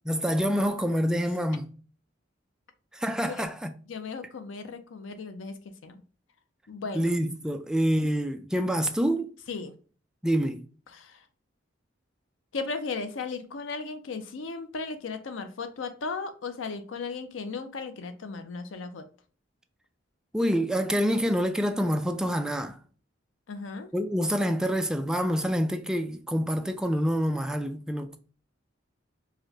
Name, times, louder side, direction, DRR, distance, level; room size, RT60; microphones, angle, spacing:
voice 1, 0.1-1.7 2.9-3.7 6.9-9.4 10.2-10.6 20.3-22.8 23.9-28.2, equal, 5° right, 0.3 m, -27 dB
voice 2, 3.9-5.5 5.8-6.0 6.7-7.1 9.5-9.7 10.9-11.2 12.5-19.1 23.5-23.9, left 4 dB, 90° left, 0.5 m, -36 dB
4.8 x 2.2 x 2.7 m
head